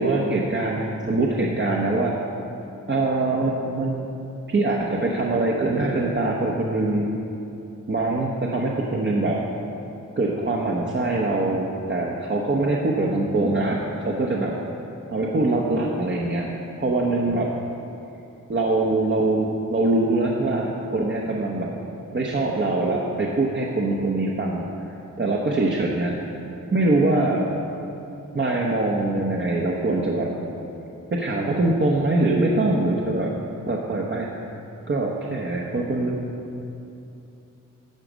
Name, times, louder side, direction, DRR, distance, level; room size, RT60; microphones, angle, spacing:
voice 1, 0.0-2.1 2.9-4.1 4.5-7.1 7.9-9.4 10.2-14.5 15.1-16.5 16.8-17.5 18.5-21.8 22.1-24.7 25.2-26.1 26.7-27.5 28.3-30.4 31.1-33.3 33.7-34.3 34.9-36.3, right 2 dB, 35° right, -2 dB, 0.9 m, -23 dB
12.0 x 5.0 x 6.2 m, 2.8 s
wide cardioid pair, 90°, 33 cm